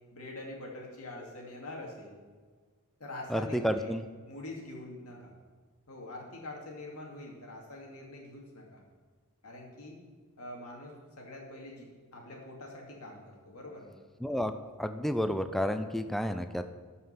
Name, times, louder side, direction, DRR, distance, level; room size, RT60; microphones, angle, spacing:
voice 1, 0.1-2.2 3.0-4.0 4.3-5.3 5.9-8.8 9.4-10.0 10.4-11.9 12.1-14.0, left 2 dB, 70° left, -1 dB, 2.4 m, -44 dB
voice 2, 3.3-4.0 14.2-14.5 14.8-16.6, equal, ahead, 9 dB, 0.4 m, -30 dB
13.0 x 5.6 x 5.8 m, 1.5 s
head